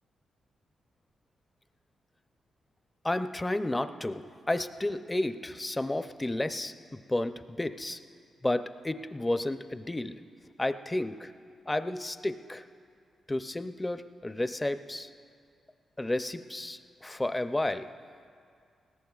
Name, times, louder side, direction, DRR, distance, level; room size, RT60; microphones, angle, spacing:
voice 1, 3.0-8.0 8.4-10.2 10.6-11.3 11.7-12.6 13.3-15.1 16.0-17.9, left 1 dB, 15° left, 10 dB, 0.5 m, -32 dB
20.5 x 18.0 x 2.4 m, 2.3 s
cardioid pair, 100°, 0 cm